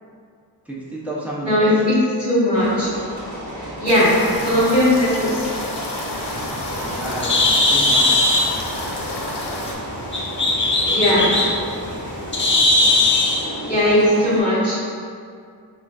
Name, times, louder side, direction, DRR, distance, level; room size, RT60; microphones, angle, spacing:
voice 1, 0.7-1.8 6.7-8.3 10.7-11.4, right 1 dB, 5° right, -7 dB, 0.7 m, -32 dB
voice 2, 1.4-2.9 3.8-4.1 4.4-5.4 10.9-11.3 13.7-14.8, left 1 dB, 10° left, -11 dB, 1.2 m, -18 dB
sound 1, 2.5-14.4, right 1 dB, 45° right, 1.1 m, -33 dB
sound 2, 3.9-9.7, left 2 dB, 75° left, 0.6 m, -30 dB
Bird, 6.2-13.5, left 2 dB, 30° left, 0.4 m, -19 dB
5.2 x 2.2 x 2.4 m, 2.2 s
wide cardioid pair, 85°, 41 cm